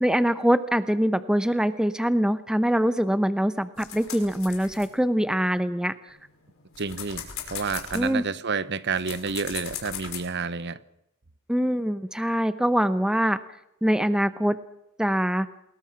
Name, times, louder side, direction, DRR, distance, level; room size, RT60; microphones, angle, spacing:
voice 1, 0.0-5.9 7.9-8.2 11.5-13.4 13.8-14.6 15.0-15.5, equal, 5° right, 12 dB, 0.8 m, -23 dB
sound 1, 3.8-5.6 6.1-10.2, left 8 dB, 65° left, 5.5 m, -38 dB
voice 2, 6.8-10.8, right 5 dB, 50° right, 15 dB, 1.0 m, -30 dB
28.5 x 21.0 x 6.0 m, 0.83 s
head